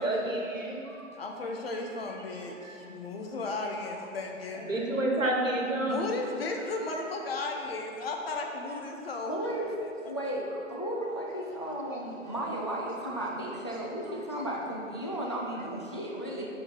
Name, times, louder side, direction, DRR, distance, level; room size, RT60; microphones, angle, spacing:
voice 1, 0.0-1.1 1.7-1.8 2.6-2.7 4.6-5.9, right 1 dB, 85° right, -1 dB, 1.4 m, -30 dB
voice 2, 1.2-4.7 5.9-9.5 9.8-9.9, left 3 dB, 50° left, 2 dB, 0.9 m, -35 dB
voice 3, 9.3-9.7 10.0-16.5, right 1 dB, 25° left, -2 dB, 0.3 m, -34 dB
5.1 x 5.0 x 5.5 m, 2.5 s
figure-of-eight pair, 130°, 38 cm